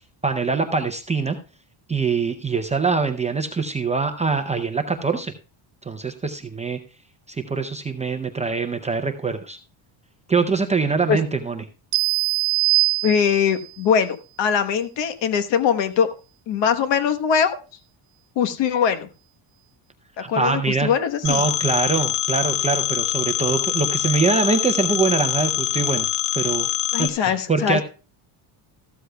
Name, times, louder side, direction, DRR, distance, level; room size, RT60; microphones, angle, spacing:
voice 1, 0.2-1.4 1.9-5.3 5.8-6.8 7.3-9.6 10.3-11.6 20.2-20.9 21.2-26.1 26.3-26.7 27.0-27.8, right 4 dB, 15° right, 6 dB, 0.5 m, -23 dB
sound 1, 11.9-13.7, right 23 dB, 85° right, 0.6 m, -22 dB
voice 2, 13.0-16.1 16.5-17.6 18.4-19.1 20.3-21.5 26.9-27.8, left 7 dB, 60° left, 9 dB, 1.2 m, -21 dB
Telephone, 21.2-27.1, left 13 dB, 90° left, 1.1 m, -24 dB
14.0 x 13.0 x 2.2 m, 0.33 s
cardioid pair, 165°, 49 cm